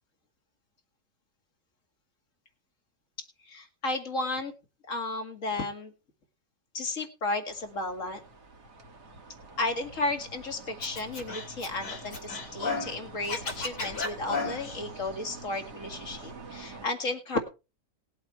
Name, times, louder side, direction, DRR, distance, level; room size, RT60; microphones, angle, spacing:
voice 1, 3.4-4.5 4.9-5.9 6.7-8.2 9.6-17.4, left 2 dB, 45° left, 6 dB, 2.5 m, -33 dB
sound 1, 7.5-16.9, right 2 dB, 65° right, 2.2 m, -46 dB
Scratching (performance technique), 10.8-12.9 13.2-14.8, left 4 dB, 70° left, 3.9 m, -34 dB
19.5 x 7.9 x 4.5 m, 0.31 s
omnidirectional pair, 1.9 m